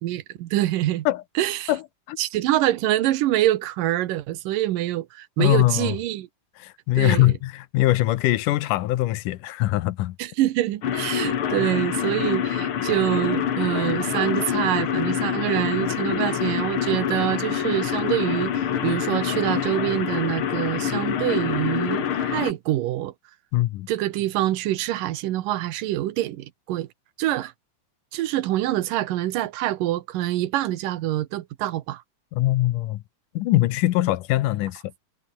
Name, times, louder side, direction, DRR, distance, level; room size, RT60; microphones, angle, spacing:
voice 1, 0.0-1.1 1.4-1.7 2.2-6.3 7.0-7.3 10.2-23.1 23.9-26.9 27.2-27.5 28.1-32.0, right 14 dB, 80° right, 2.7 m, -25 dB
voice 2, 5.4-6.0 6.6-10.2 23.5-23.9 32.3-33.0 33.4-34.8, left 16 dB, 80° left, 2.4 m, -22 dB
sound 1, 10.8-22.5, left 9 dB, 50° left, 1.9 m, -26 dB
omnidirectional pair, 3.8 m